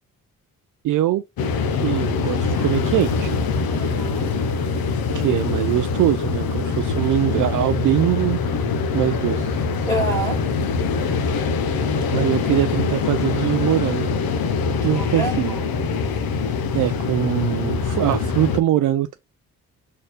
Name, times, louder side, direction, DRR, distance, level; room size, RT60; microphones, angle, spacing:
voice 1, 0.8-1.2 1.8-3.4 5.1-8.4 8.9-9.6 12.1-14.2 14.8-15.6 16.7-19.2, right 13 dB, 45° right, 0.4 m, -22 dB
sound 1, 1.4-18.6, left 4 dB, 55° left, 0.9 m, -23 dB
voice 2, 3.7-4.3 9.9-10.4 14.8-15.7, right 2 dB, 10° left, 2.2 m, -28 dB
5.1 x 4.2 x 2.2 m
hypercardioid pair, 40°, 43 cm